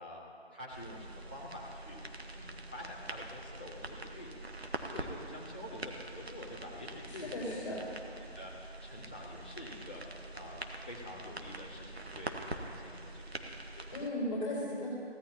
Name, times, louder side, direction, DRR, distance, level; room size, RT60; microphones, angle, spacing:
voice 1, 0.0-2.0 2.3-4.3 4.9-7.8 8.2-10.0 10.3-13.9, left 1 dB, 10° left, -8 dB, 0.8 m, -47 dB
sound 1, 0.7-14.1, right 2 dB, 70° right, 1.3 m, -45 dB
voice 2, 7.1-7.8 13.9-14.9, left 1 dB, 30° left, -7 dB, 4.2 m, -36 dB
23.5 x 16.5 x 2.9 m, 2.6 s
figure-of-eight pair, 160°, 33 cm